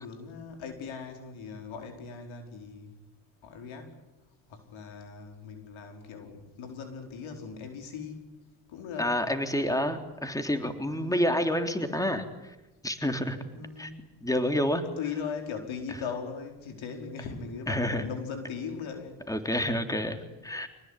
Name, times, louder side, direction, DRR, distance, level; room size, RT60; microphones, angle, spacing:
voice 1, 0.0-2.9 3.4-3.9 4.5-8.2 8.7-9.1 9.7-9.8 10.9-11.2 13.5-14.1 14.8-19.2, left 6 dB, 75° left, 4 dB, 4.7 m, -39 dB
voice 2, 9.0-12.6 12.8-13.4 13.8-13.9 14.2-14.8 15.9-16.0 17.7-18.0 19.3-20.7, equal, 5° left, 6 dB, 3.5 m, -28 dB
26.5 x 19.0 x 9.9 m, 1.0 s
supercardioid pair, 55°, 47 cm